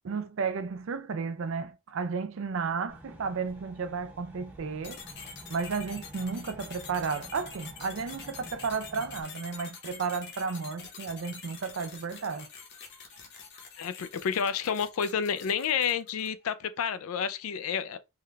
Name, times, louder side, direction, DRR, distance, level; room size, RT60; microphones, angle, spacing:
voice 1, 0.0-5.0 5.5-12.5, right 5 dB, 65° right, 0.4 m, -33 dB
sound 1, 2.9-9.2, right 1 dB, 10° right, 0.7 m, -49 dB
sound 2, 4.8-16.4, left 5 dB, 55° left, 1.0 m, -46 dB
voice 2, 13.8-18.0, left 7 dB, 75° left, 0.4 m, -30 dB
3.7 x 2.2 x 3.2 m
head